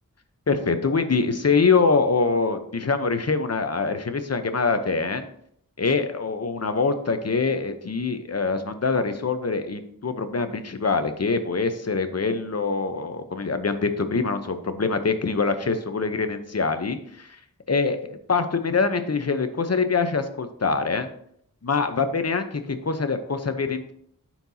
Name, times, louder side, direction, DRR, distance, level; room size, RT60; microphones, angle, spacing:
voice 1, 0.5-5.2 5.8-17.3 17.7-21.1 21.6-23.9, left 4 dB, 45° left, 9 dB, 0.8 m, -24 dB
13.0 x 4.5 x 2.8 m, 0.69 s
wide cardioid pair, 60°, 34 cm